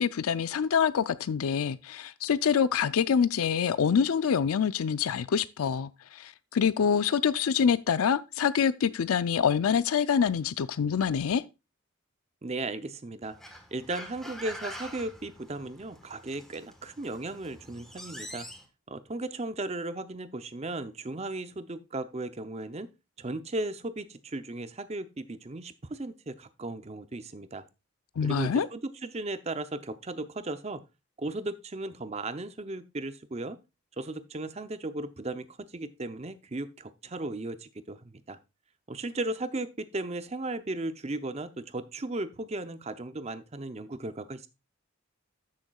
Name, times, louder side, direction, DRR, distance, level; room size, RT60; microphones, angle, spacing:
voice 1, 0.0-11.4 28.2-28.7, left 7 dB, 90° left, 0.4 m, -26 dB
voice 2, 12.4-13.4 13.7-18.5 18.9-22.9 23.2-27.6 28.2-30.8 31.2-33.6 34.0-38.4 38.9-44.5, right 2 dB, 30° right, 0.6 m, -36 dB
sound 1, 13.2-18.6, equal, ahead, 1.2 m, -45 dB
13.5 x 6.5 x 2.3 m
head